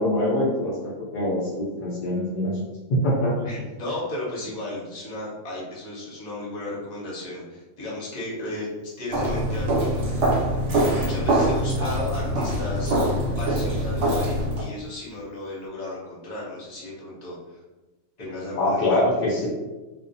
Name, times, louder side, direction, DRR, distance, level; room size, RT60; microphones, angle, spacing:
voice 1, 0.0-2.6 2.9-3.5 18.6-19.5, left 1 dB, 75° left, -6 dB, 0.4 m, -24 dB
voice 2, 3.4-8.7 9.0-10.1 10.9-12.9 13.4-17.6 18.2-19.0, left 1 dB, 40° left, -6 dB, 0.7 m, -34 dB
Walk footsteps, 9.1-14.7, right 1 dB, 60° right, 0.9 m, -24 dB
2.4 x 2.1 x 2.6 m, 1.1 s
omnidirectional pair, 1.5 m